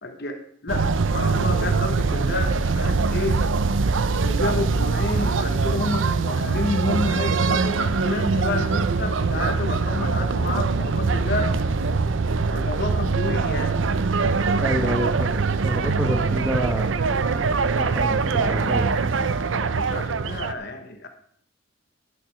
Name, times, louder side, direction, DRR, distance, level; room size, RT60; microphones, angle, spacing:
voice 1, 0.0-3.4 4.2-11.5 12.5-13.8 19.5-21.1, left 2 dB, 55° left, 6 dB, 1.2 m, -30 dB
sound 1, 0.7-20.5, right 4 dB, 80° right, 0.6 m, -23 dB
voice 2, 14.6-17.3 17.6-19.0, equal, 10° right, 1 dB, 1.3 m, -29 dB
11.5 x 9.7 x 4.9 m, 0.66 s
head